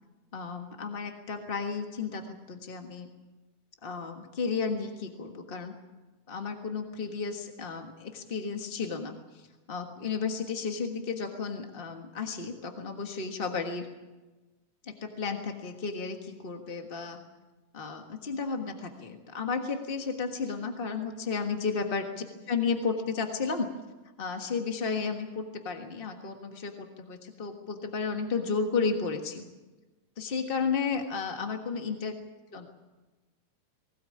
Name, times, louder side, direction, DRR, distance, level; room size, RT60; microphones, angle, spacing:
voice 1, 0.3-3.1 3.8-5.7 6.3-13.9 14.8-17.2 17.7-22.0 22.5-23.7 24.2-29.4 30.2-32.1 32.5-32.7, left 5 dB, 30° left, 4 dB, 0.9 m, -33 dB
20.0 x 18.5 x 8.7 m, 1.2 s
omnidirectional pair, 3.3 m